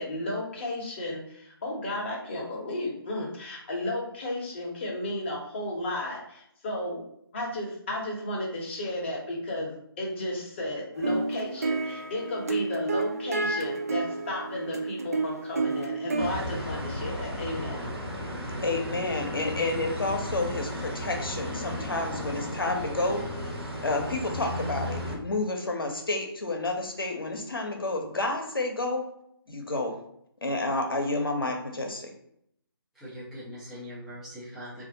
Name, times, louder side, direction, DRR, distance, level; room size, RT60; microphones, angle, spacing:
voice 1, 0.0-7.0 7.3-17.8, left 1 dB, 25° left, -2 dB, 0.9 m, -33 dB
sound 1, 11.0-16.3, right 3 dB, 40° right, 0.4 m, -30 dB
sound 2, 16.2-25.2, left 1 dB, 90° right, 1.3 m, -34 dB
voice 2, 18.6-23.3 23.8-29.1 29.5-30.0 30.4-32.1, left 2 dB, 65° left, 3 dB, 0.8 m, -30 dB
voice 3, 19.3-19.6 32.9-34.9, left 1 dB, ahead, -12 dB, 0.7 m, -42 dB
4.1 x 2.6 x 2.7 m, 0.71 s
figure-of-eight pair, 145°, 13 cm